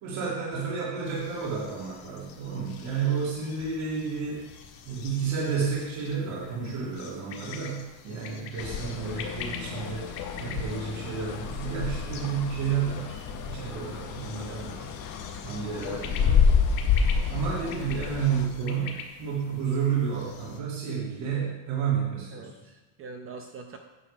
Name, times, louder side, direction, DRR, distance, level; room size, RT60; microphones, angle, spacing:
voice 1, 0.0-4.5 4.9-10.1 10.4-14.8 15.4-16.4 17.3-22.5, right 6 dB, 75° right, -6 dB, 2.5 m, -31 dB
sound 1, 1.0-20.6, left 6 dB, 75° left, 1.5 m, -46 dB
sound 2, 8.6-18.5, left 6 dB, 40° left, 0.8 m, -29 dB
voice 2, 14.5-15.0 17.5-17.9 22.3-23.8, right 4 dB, 30° right, 5 dB, 0.4 m, -45 dB
9.9 x 6.2 x 5.0 m, 1.1 s
cardioid pair, 180°, 48 cm